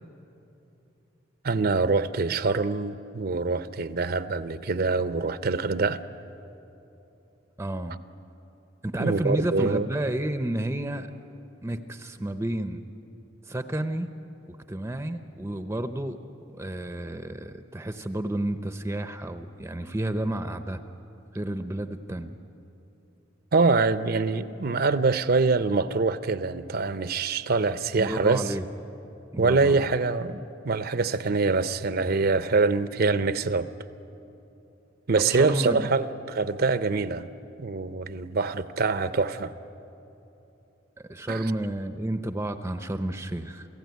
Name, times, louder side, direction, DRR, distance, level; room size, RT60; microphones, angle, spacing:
voice 1, 1.4-6.0 9.0-9.9 23.5-28.5 29.4-33.7 35.1-37.3 37.6-39.5 41.3-41.5, right 3 dB, 55° right, 12 dB, 0.7 m, -24 dB
voice 2, 7.6-8.0 8.8-11.1 11.6-12.8 13.5-14.1 14.5-16.2 16.6-20.8 21.3-22.4 28.0-28.6 29.3-29.8 35.3-35.9 41.0-43.7, right 1 dB, 15° right, 8 dB, 0.7 m, -31 dB
28.0 x 16.0 x 9.3 m, 2.9 s
head